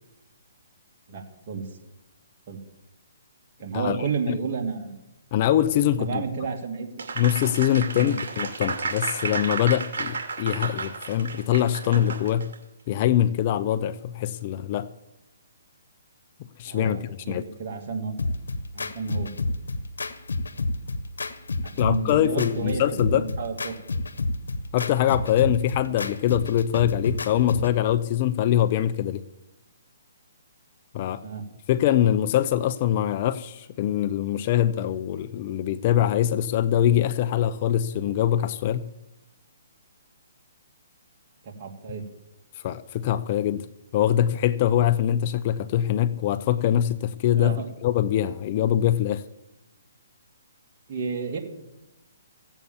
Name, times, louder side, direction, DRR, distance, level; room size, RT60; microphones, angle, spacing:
voice 1, 1.1-1.7 2.5-2.6 3.6-5.0 6.0-6.9 8.0-8.1 16.7-18.1 18.7-19.3 21.6-23.7 31.2-31.5 41.4-42.0 47.3-47.7 50.9-51.4, right 5 dB, 40° right, 2.5 m, -31 dB
voice 2, 5.3-6.2 7.2-12.5 12.9-14.9 16.6-17.4 21.8-23.3 24.7-29.2 30.9-31.2 31.7-38.8 42.6-43.7 43.9-49.2, left 11 dB, 35° left, 0.6 m, -23 dB
Applause, 7.0-12.5, right 4 dB, 60° right, 2.6 m, -32 dB
sound 1, 18.2-27.8, left 2 dB, 85° left, 1.2 m, -30 dB
16.0 x 8.2 x 7.2 m
hypercardioid pair, 150°, 0 cm